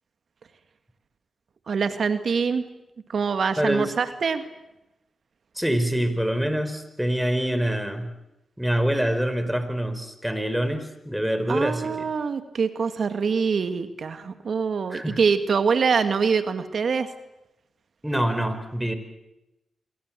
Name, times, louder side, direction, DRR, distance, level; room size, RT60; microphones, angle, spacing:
voice 1, 1.7-2.6 3.1-4.4 11.5-17.1, right 5 dB, 65° right, 9 dB, 1.9 m, -24 dB
voice 2, 3.6-3.9 5.5-8.1 8.6-12.0 14.9-15.2 18.0-18.9, equal, 5° right, 9 dB, 5.0 m, -25 dB
26.5 x 23.5 x 7.6 m, 0.95 s
supercardioid pair, 40°, 0 cm